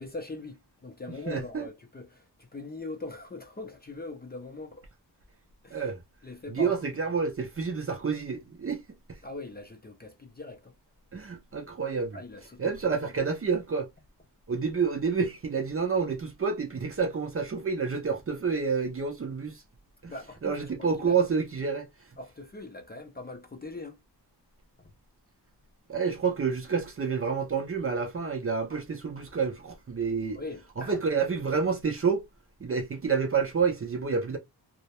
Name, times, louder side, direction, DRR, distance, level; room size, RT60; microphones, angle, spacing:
voice 1, 0.0-4.9 5.6-5.9 6.2-6.8 7.0-7.2 9.2-10.7 12.1-13.0 20.1-21.2 22.2-24.0 24.8-24.9 30.3-31.2, left 2 dB, 25° left, 0.4 m, -41 dB
voice 2, 1.3-1.7 5.7-6.0 6.5-8.8 9.1-9.2 11.1-12.2 12.6-13.9 14.5-19.6 20.0-20.1 20.4-21.9 25.9-30.4 30.8-32.2 32.6-34.4, right 5 dB, 35° right, 0.5 m, -29 dB
2.2 x 2.0 x 2.8 m
wide cardioid pair, 135°, 41 cm